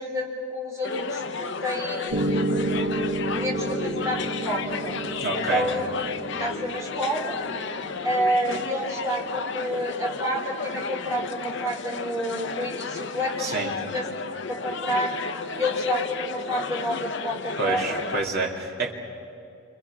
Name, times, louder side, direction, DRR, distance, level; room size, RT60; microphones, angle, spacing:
voice 1, 0.0-2.3 3.2-5.0 5.3-5.8 6.4-7.3 8.0-14.0 14.5-15.2 15.6-18.0, equal, 15° right, -2 dB, 3.8 m, -29 dB
sound 1, 0.8-18.2, left 5 dB, 55° left, 0.8 m, -33 dB
Piano, 2.1-10.2, right 1 dB, 80° right, 2.2 m, -31 dB
voice 2, 5.2-5.7 13.4-13.7 17.6-18.9, right 3 dB, 50° right, 0 dB, 3.0 m, -27 dB
29.0 x 26.5 x 6.1 m, 2.6 s
head